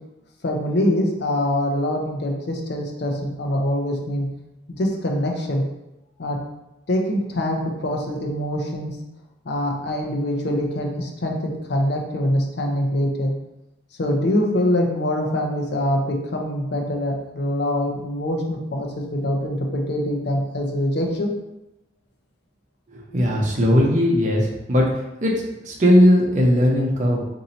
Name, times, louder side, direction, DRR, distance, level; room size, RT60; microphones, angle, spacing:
voice 1, 0.4-4.3 4.8-5.6 6.2-6.4 6.9-9.0 9.5-13.3 14.0-21.3, left 1 dB, 60° left, 1 dB, 0.6 m, -24 dB
voice 2, 22.9-24.9 25.2-27.3, equal, 40° right, -1 dB, 0.7 m, -18 dB
2.7 x 2.6 x 4.1 m, 0.92 s
head